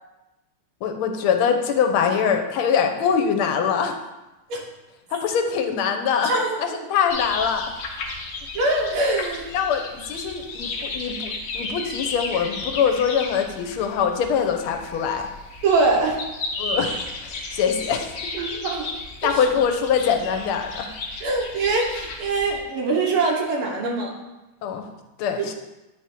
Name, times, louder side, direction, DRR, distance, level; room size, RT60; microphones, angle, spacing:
voice 1, 0.8-3.9 5.1-6.3 6.6-7.7 9.5-15.3 16.6-17.0 17.2-18.1 19.2-20.9 24.6-24.9 25.2-25.5, left 7 dB, 85° left, 5 dB, 1.5 m, -23 dB
voice 2, 6.2-6.8 8.5-9.5 15.6-16.2 18.4-18.9 19.2-19.4 21.2-24.1 25.4-25.5, right 3 dB, 80° right, -1 dB, 2.1 m, -23 dB
sound 1, 7.1-22.6, left 3 dB, 55° left, 1.1 m, -34 dB
8.6 x 3.5 x 4.3 m, 1.0 s
omnidirectional pair, 2.3 m